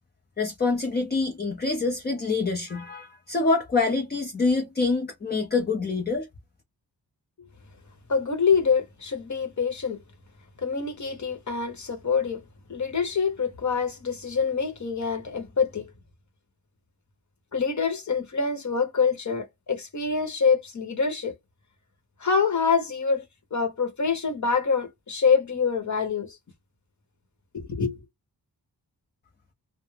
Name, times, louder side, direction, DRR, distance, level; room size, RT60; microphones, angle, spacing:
voice 1, 0.4-6.3, left 3 dB, 25° left, 0.5 m, -26 dB
voice 2, 8.1-10.0 10.6-12.4 12.7-15.9 17.5-21.3 22.2-23.2 23.5-26.4 27.5-28.0, left 5 dB, 45° left, 1.0 m, -25 dB
2.3 x 2.0 x 3.2 m
wide cardioid pair, 95°, 40 cm